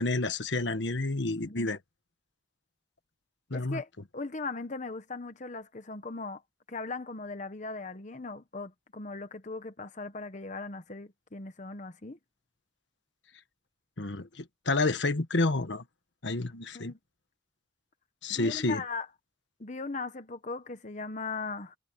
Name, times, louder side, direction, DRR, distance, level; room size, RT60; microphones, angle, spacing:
voice 1, 0.0-1.8 3.5-3.8 14.0-15.8 16.2-16.9 18.2-18.8, left 2 dB, 75° left, 1.4 m, -29 dB
voice 2, 3.5-6.4 6.7-12.2 16.7-17.0 18.3-19.1 19.6-21.8, left 3 dB, 40° left, 1.1 m, -39 dB
head